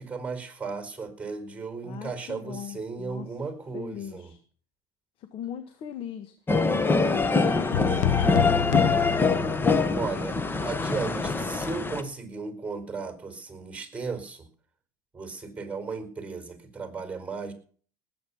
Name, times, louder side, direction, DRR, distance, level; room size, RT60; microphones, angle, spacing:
voice 1, 0.0-4.3 9.9-14.5 15.1-17.5, right 4 dB, 15° right, 9 dB, 4.8 m, -35 dB
voice 2, 1.8-3.4 3.7-4.4 5.2-6.3 6.6-8.7, left 10 dB, 55° left, 9 dB, 1.7 m, -38 dB
sound 1, 6.5-12.0, left 4 dB, 20° left, 1.5 m, -24 dB
sound 2, 7.7-10.0, left 10 dB, 80° left, 1.1 m, -28 dB
19.0 x 8.6 x 5.7 m, 0.44 s
supercardioid pair, 95°, 11 cm